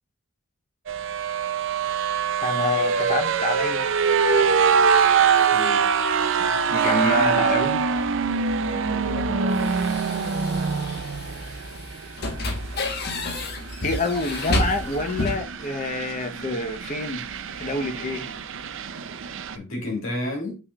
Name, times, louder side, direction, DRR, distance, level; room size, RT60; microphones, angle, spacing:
sound 1, 0.9-19.6, right 6 dB, 70° right, 0.6 m, -24 dB
voice 1, 2.4-3.9 6.7-7.8 13.8-17.2 17.6-18.2, left 2 dB, 40° left, 0.9 m, -27 dB
voice 2, 5.5-5.9 6.8-7.5 8.6-10.0 19.5-20.6, left 1 dB, 80° left, 3.0 m, -33 dB
sound 2, 7.9-15.4, left 1 dB, 55° left, 1.3 m, -31 dB
6.9 x 5.7 x 2.4 m
head